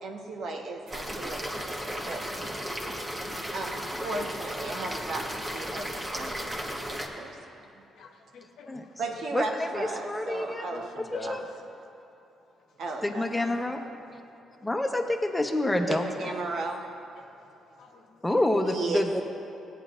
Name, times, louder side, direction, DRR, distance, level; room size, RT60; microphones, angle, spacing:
voice 1, 0.0-2.2 3.5-3.7 4.0-6.6 6.9-7.3 7.6-7.9 9.0-10.9 11.2-11.4 12.8-13.6 15.9-16.8 18.7-19.0, right 3 dB, 70° right, 1 dB, 1.2 m, -35 dB
sound 1, 0.9-7.1, equal, 15° right, 1.2 m, -35 dB
sound 2, 0.9-6.7, right 1 dB, 90° right, 1.9 m, -47 dB
voice 2, 1.9-3.5 6.8-7.6 7.9-9.2 10.4-12.1 12.5-13.0 14.1-14.4 14.6-14.8 15.7-15.8 17.2-18.4, left 4 dB, 75° left, 3 dB, 1.0 m, -47 dB
voice 3, 9.3-10.7 11.0-11.4 13.0-13.8 14.6-16.3 18.2-19.2, left 1 dB, 10° left, 3 dB, 0.9 m, -28 dB
17.0 x 9.2 x 2.6 m, 2.8 s
cardioid pair, 90°, 0 cm